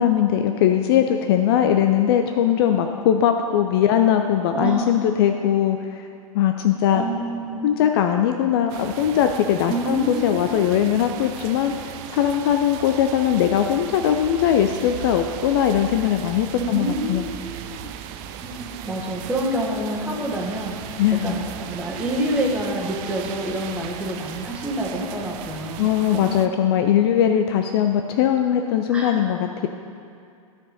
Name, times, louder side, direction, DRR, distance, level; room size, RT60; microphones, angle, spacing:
voice 1, 0.0-6.0 6.3-7.0 7.6-11.7 12.1-17.3 21.0-21.4 25.8-29.7, left 9 dB, 45° left, 6 dB, 0.4 m, -20 dB
voice 2, 4.5-4.9 6.5-6.6 6.9-7.9 9.7-10.8 16.5-17.9 18.4-26.3 28.9-29.1, right 1 dB, 5° right, -3 dB, 1.4 m, -28 dB
sound 1, 8.7-26.5, right 10 dB, 35° right, 0.4 m, -37 dB
13.0 x 4.7 x 4.0 m, 2.5 s
figure-of-eight pair, 100°, 18 cm